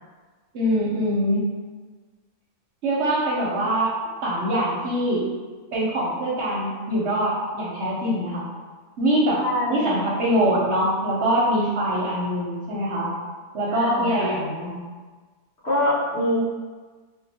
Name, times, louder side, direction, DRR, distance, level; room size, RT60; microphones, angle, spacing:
voice 1, 0.5-1.4 2.8-3.9 4.2-5.3 5.7-8.4 9.0-13.1 13.5-14.8, equal, 60° right, -5 dB, 0.8 m, -23 dB
voice 2, 9.4-10.1 13.7-14.3 15.6-16.4, left 1 dB, 50° left, -10 dB, 1.2 m, -25 dB
2.8 x 2.3 x 4.0 m, 1.4 s
omnidirectional pair, 1.6 m